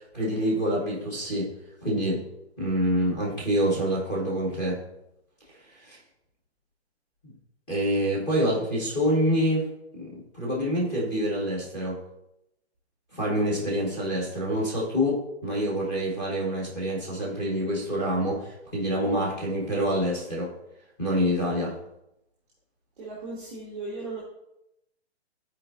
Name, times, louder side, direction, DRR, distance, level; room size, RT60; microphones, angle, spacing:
voice 1, 0.1-1.5 1.8-2.3 2.6-4.8 5.8-6.0 7.2-7.3 7.7-9.7 9.9-12.0 13.1-20.5 21.0-21.8, equal, 10° left, -5 dB, 1.2 m, -26 dB
voice 2, 23.0-24.2, right 3 dB, 5° right, -4 dB, 0.8 m, -36 dB
13.5 x 4.6 x 2.5 m, 0.87 s
hypercardioid pair, 180°, 33 cm